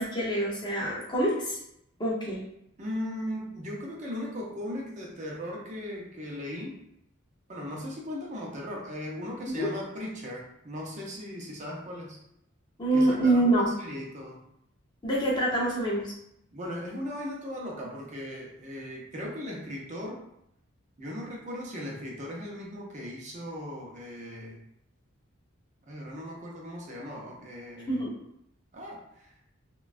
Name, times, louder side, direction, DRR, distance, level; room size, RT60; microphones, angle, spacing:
voice 1, 0.0-1.6 2.0-2.4 9.6-9.7 12.8-13.7 15.0-16.1 27.9-28.1, right 1 dB, 20° left, -5 dB, 0.7 m, -25 dB
voice 2, 2.8-6.8 7.5-12.2 12.9-14.4 16.5-20.2 21.0-24.6 25.9-28.0 28.7-29.3, left 1 dB, 35° right, -2 dB, 0.6 m, -38 dB
3.1 x 2.2 x 2.4 m, 0.77 s
head